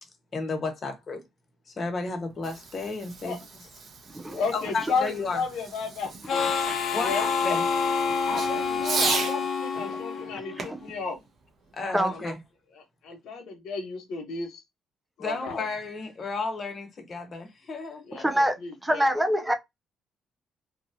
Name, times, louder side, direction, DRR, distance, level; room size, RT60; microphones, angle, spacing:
voice 1, 0.3-1.2 1.7-3.7 4.5-5.5 6.9-7.7 11.7-12.4 15.2-18.3, left 3 dB, 45° left, 1.1 m, -33 dB
Fireworks, 2.1-9.4 10.6-12.2, right 4 dB, 55° right, 0.9 m, -36 dB
voice 2, 4.3-6.4 7.0-7.6 8.2-11.2 12.1-12.3 12.8-14.6 15.2-15.6 18.0-19.0, left 4 dB, 85° left, 1.0 m, -33 dB
Harmonica, 6.3-10.7, left 5 dB, 60° left, 0.5 m, -27 dB
voice 3, 6.4-6.8 8.3-9.1 9.8-10.0 10.5-10.8 11.9-12.4 18.1-19.5, equal, 10° right, 0.6 m, -28 dB
3.0 x 2.5 x 2.6 m
cardioid pair, 90°, 0 cm